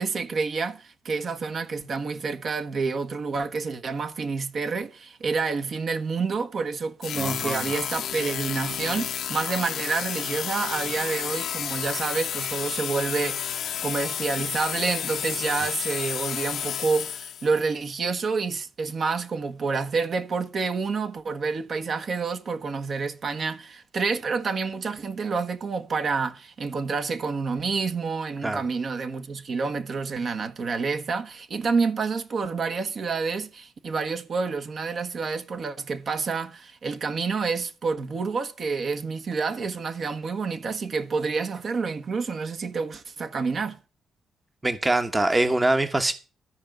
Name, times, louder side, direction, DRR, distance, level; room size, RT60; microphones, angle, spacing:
voice 1, 0.0-43.8, right 4 dB, 50° right, 1.3 m, -28 dB
sound 1, 7.0-17.6, left 9 dB, 70° left, 0.9 m, -31 dB
voice 2, 7.2-7.6 28.4-28.6 44.6-46.1, right 2 dB, 20° right, 1.1 m, -23 dB
13.0 x 4.8 x 7.9 m
cardioid pair, 90°, 0 cm